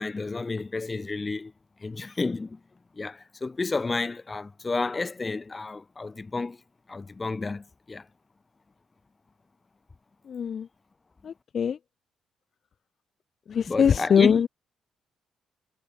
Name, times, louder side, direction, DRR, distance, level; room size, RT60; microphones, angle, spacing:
voice 1, 0.0-1.5 1.8-2.6 3.0-6.6 6.9-8.0 13.6-14.4, left 3 dB, 25° left, 2.8 m, -31 dB
voice 2, 10.3-10.7 11.2-11.8 13.5-14.5, left 7 dB, 50° left, 1.3 m, -22 dB
cardioid pair, 90°, 0 cm